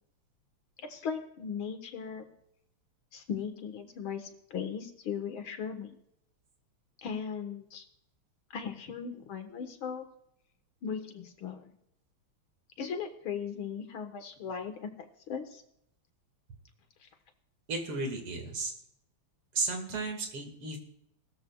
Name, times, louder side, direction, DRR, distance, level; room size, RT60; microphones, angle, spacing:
voice 1, 0.9-2.3 3.1-6.0 7.0-7.9 8.5-10.1 10.8-11.7 12.8-15.6 17.0-17.1, left 6 dB, 70° left, 6 dB, 2.2 m, -38 dB
voice 2, 17.7-18.7 19.5-20.8, right 3 dB, 85° right, 3 dB, 3.0 m, -34 dB
19.5 x 14.0 x 2.3 m, 0.75 s
omnidirectional pair, 2.4 m